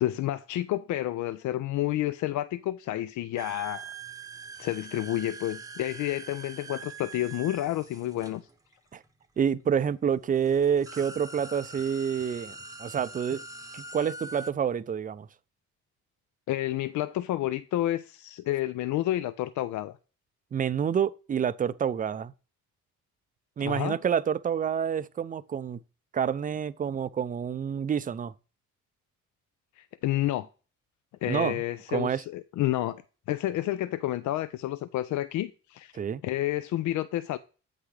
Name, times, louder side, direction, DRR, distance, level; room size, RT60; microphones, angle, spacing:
voice 1, 0.0-3.9 4.6-8.4 16.5-19.9 23.6-24.0 29.8-30.5 31.2-33.0 33.3-35.9 36.2-37.4, left 14 dB, 70° left, 0.4 m, -30 dB
sound 1, 3.4-9.1 9.9-10.0 10.3-14.5, right 3 dB, 10° right, 0.8 m, -43 dB
voice 2, 9.4-12.5 12.8-13.4 13.7-15.3 20.5-22.3 23.6-25.8 26.1-28.3 31.3-31.6 31.9-32.2 35.9-36.2, right 8 dB, 30° right, 0.4 m, -28 dB
8.1 x 5.8 x 3.3 m
cardioid pair, 90°, 30 cm